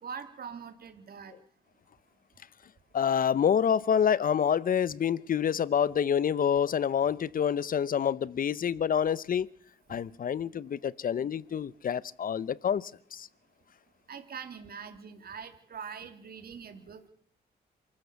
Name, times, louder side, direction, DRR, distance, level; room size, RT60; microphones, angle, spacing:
voice 1, 0.0-1.3 14.1-17.1, right 6 dB, 60° right, 3.1 m, -43 dB
voice 2, 2.9-9.5 9.9-13.3, left 8 dB, 50° left, 0.8 m, -27 dB
27.5 x 14.5 x 7.1 m
cardioid pair, 90°, 18 cm